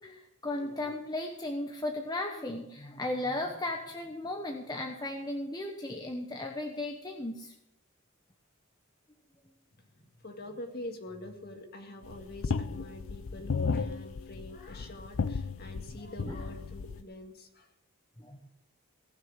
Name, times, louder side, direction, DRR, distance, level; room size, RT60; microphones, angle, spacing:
voice 1, 0.0-7.5 16.3-16.4 18.2-18.4, left 1 dB, 20° left, 2 dB, 1.0 m, -36 dB
voice 2, 9.9-17.7, left 1 dB, 45° left, 4 dB, 2.0 m, -45 dB
sound 1, 12.1-17.0, left 5 dB, 65° left, 0.5 m, -34 dB
18.0 x 6.5 x 7.4 m, 0.84 s
head